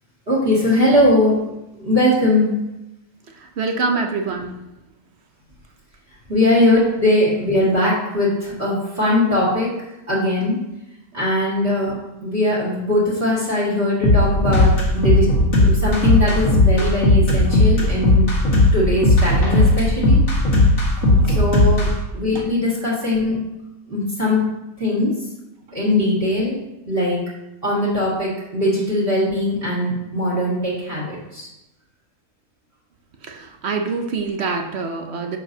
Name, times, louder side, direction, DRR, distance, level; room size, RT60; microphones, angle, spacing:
voice 1, 0.3-1.4 1.8-2.5 6.3-9.7 10.1-10.6 11.1-15.3 15.6-18.3 18.7-20.2 21.1-21.9 22.1-23.4 23.9-24.4 24.8-25.1 25.7-26.6 26.9-27.2 27.6-31.5, left 1 dB, 40° right, -6 dB, 2.5 m, -20 dB
voice 2, 3.3-4.5 21.0-21.5 22.3-22.5 25.7-25.8 33.2-35.4, right 4 dB, 55° right, 4 dB, 0.9 m, -26 dB
sound 1, 14.0-21.9, left 1 dB, 65° left, 2.2 m, -15 dB
11.0 x 6.9 x 2.8 m, 0.93 s
omnidirectional pair, 1.6 m